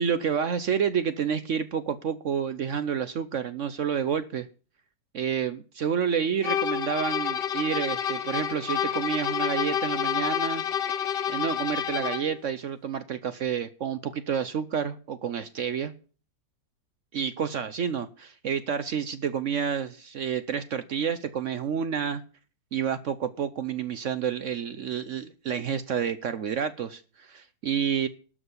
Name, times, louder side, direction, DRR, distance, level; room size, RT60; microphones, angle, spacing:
voice 1, 0.0-4.5 5.1-10.6 11.3-15.9 17.1-22.2 22.7-28.1, right 7 dB, 60° right, 12 dB, 0.8 m, -29 dB
sound 1, 6.4-12.4, left 9 dB, 45° left, 0.8 m, -29 dB
12.0 x 6.3 x 8.1 m, 0.39 s
omnidirectional pair, 1.9 m